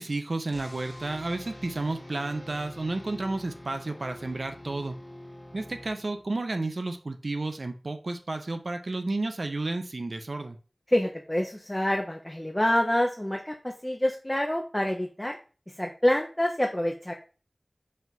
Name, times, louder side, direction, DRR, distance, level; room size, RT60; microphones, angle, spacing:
voice 1, 0.0-5.0 5.5-10.6, right 2 dB, 65° right, 7 dB, 0.5 m, -32 dB
sound 1, 0.5-6.4, left 1 dB, 35° left, 0.9 m, -45 dB
voice 2, 10.9-15.4 15.7-17.1, left 1 dB, 15° left, 2 dB, 0.4 m, -27 dB
4.2 x 2.4 x 3.8 m, 0.36 s
wide cardioid pair, 60°, 0 cm